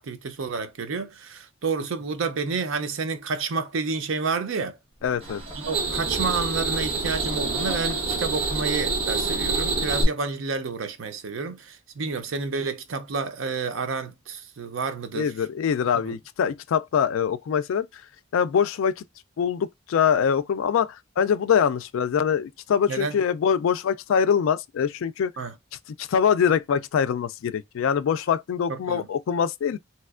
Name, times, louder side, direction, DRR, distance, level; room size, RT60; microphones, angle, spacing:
voice 1, 0.0-4.8 5.6-15.3 16.0-16.1 22.9-23.2 25.4-25.5 28.7-29.1, right 4 dB, 75° right, 0.5 m, -30 dB
Knock, 4.9-9.0, equal, 20° left, 1.0 m, -43 dB
voice 2, 5.0-5.4 9.4-9.7 15.1-17.9 18.3-19.0 19.4-25.3 26.0-29.8, left 7 dB, 80° left, 0.3 m, -24 dB
sound 1, 5.2-10.0, right 3 dB, 30° right, 1.0 m, -27 dB
3.3 x 2.9 x 2.4 m
head